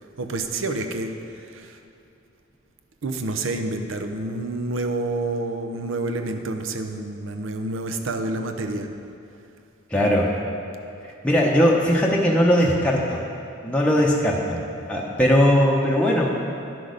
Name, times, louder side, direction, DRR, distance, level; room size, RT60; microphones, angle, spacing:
voice 1, 0.2-1.2 1.5-1.8 3.0-8.9, right 2 dB, 80° right, 6 dB, 0.7 m, -28 dB
voice 2, 9.9-10.3 11.0-13.2 13.6-14.6 14.9-16.3, equal, 5° left, -3 dB, 0.7 m, -19 dB
11.0 x 6.1 x 5.0 m, 2.6 s
head